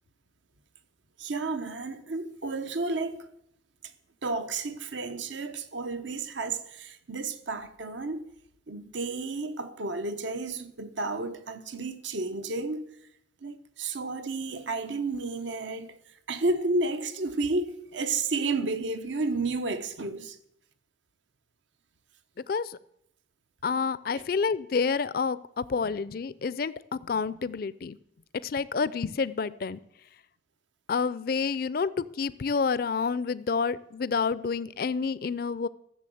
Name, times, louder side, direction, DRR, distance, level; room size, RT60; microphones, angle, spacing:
voice 1, 1.2-3.3 4.2-8.3 8.7-12.8 13.4-20.4 24.2-24.3, right 3 dB, 80° right, 1.0 m, -32 dB
voice 2, 22.5-22.8 23.6-28.0 28.4-29.8 30.9-35.7, left 5 dB, 50° left, 0.4 m, -29 dB
14.0 x 7.1 x 7.8 m
head